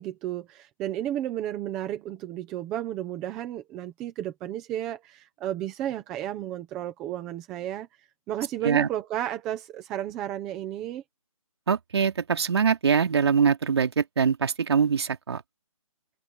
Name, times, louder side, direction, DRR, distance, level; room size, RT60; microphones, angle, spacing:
voice 1, 0.0-7.9 8.3-11.0, right 12 dB, ahead, 0.4 m, -32 dB
voice 2, 11.7-15.4, right 6 dB, 45° right, 2.6 m, -23 dB
figure-of-eight pair, 160°, 19 cm